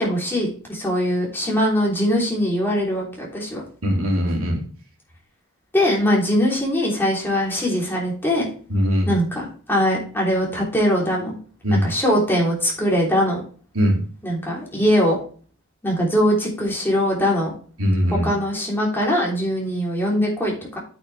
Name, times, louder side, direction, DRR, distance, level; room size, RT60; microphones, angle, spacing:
voice 1, 0.0-3.6 5.7-8.5 9.1-11.3 11.7-13.4 14.2-15.2 15.8-17.5 18.2-20.8, equal, 10° left, -3 dB, 3.3 m, -21 dB
voice 2, 3.8-4.6 8.7-9.1 11.6-11.9 13.7-14.0 17.8-18.3, equal, 85° right, 0 dB, 2.8 m, -20 dB
8.6 x 6.3 x 3.3 m, 0.41 s
head